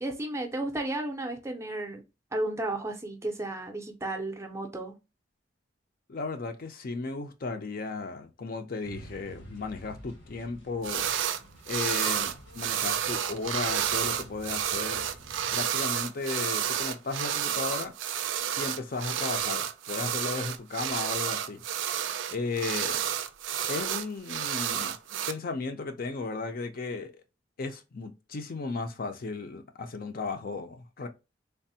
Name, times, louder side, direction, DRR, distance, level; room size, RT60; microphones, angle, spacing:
voice 1, 0.0-2.0 2.3-4.9, right 2 dB, 15° right, 0.5 m, -33 dB
voice 2, 6.1-11.1 11.7-15.0 15.5-17.9 18.6-21.6 22.3-23.0 23.7-25.0 25.3-27.1 27.6-31.1, left 3 dB, 50° left, 0.5 m, -35 dB
sound 1, 8.8-15.6, right 1 dB, 80° left, 1.1 m, -50 dB
sound 2, 10.8-11.4 11.7-25.3, right 10 dB, 90° right, 0.4 m, -30 dB
3.3 x 2.0 x 2.6 m
head